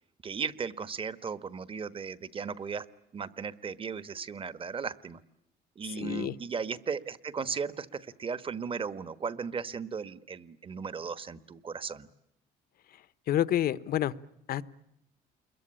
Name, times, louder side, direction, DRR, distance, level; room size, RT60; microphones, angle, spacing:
voice 1, 0.2-2.9 3.1-5.2 5.7-12.1, right 5 dB, 30° right, 13 dB, 1.3 m, -36 dB
voice 2, 6.0-6.3 13.3-14.1 14.5-14.6, left 12 dB, 60° left, 15 dB, 1.1 m, -28 dB
28.5 x 22.5 x 8.9 m, 0.80 s
cardioid pair, 110°, 17 cm